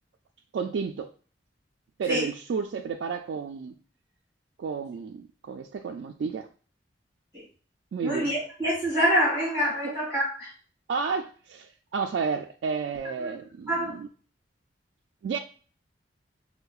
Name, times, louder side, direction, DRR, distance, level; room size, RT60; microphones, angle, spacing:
voice 1, 0.5-1.1 2.0-3.7 4.6-6.5 7.9-8.3 9.8-9.9 10.9-14.1 15.2-15.4, right 5 dB, 70° right, 0.3 m, -31 dB
voice 2, 8.0-10.5 13.2-13.3 13.7-14.0, equal, 5° left, 1.8 m, -26 dB
5.5 x 2.1 x 2.3 m
head